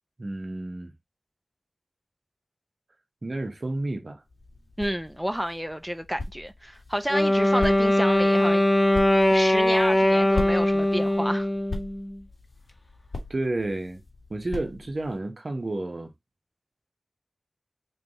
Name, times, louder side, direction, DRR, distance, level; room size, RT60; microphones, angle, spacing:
voice 1, 0.2-0.9 3.2-4.2 13.3-14.0 14.3-16.1, right 2 dB, 60° right, 0.9 m, -31 dB
sound 1, 4.2-15.2, left 2 dB, 80° left, 1.2 m, -40 dB
voice 2, 4.8-8.6 9.3-11.5, equal, 5° right, 0.5 m, -30 dB
Wind instrument woodwind instrument, 7.1-12.1, left 1 dB, 30° left, 0.8 m, -21 dB
3.4 x 2.3 x 4.0 m
wide cardioid pair, 45°, 0 cm